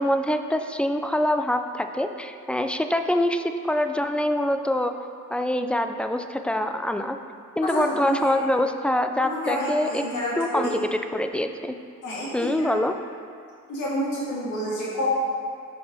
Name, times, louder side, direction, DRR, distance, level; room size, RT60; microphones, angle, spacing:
voice 1, 0.0-5.0 5.3-7.2 7.6-10.0 10.4-11.7 12.3-13.0, left 1 dB, 5° left, 7 dB, 0.3 m, -25 dB
voice 2, 7.6-8.3 9.2-10.7 12.0-12.7 13.7-15.1, equal, 75° left, -7 dB, 1.8 m, -29 dB
5.5 x 5.3 x 5.9 m, 2.2 s
cardioid pair, 90°, 30 cm